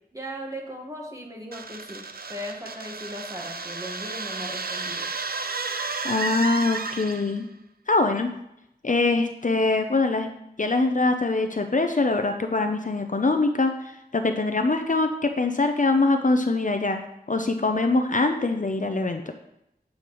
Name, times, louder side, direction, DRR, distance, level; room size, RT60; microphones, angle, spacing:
voice 1, 0.1-5.1, equal, 20° right, 0 dB, 1.5 m, -38 dB
sound 1, 1.5-7.4, right 4 dB, 65° right, 0.5 m, -32 dB
voice 2, 6.0-7.5 7.9-8.3 8.8-10.3 10.6-17.0 17.3-19.3, left 3 dB, 50° left, 6 dB, 0.6 m, -23 dB
8.4 x 6.4 x 3.0 m, 0.82 s
wide cardioid pair, 45°, 17 cm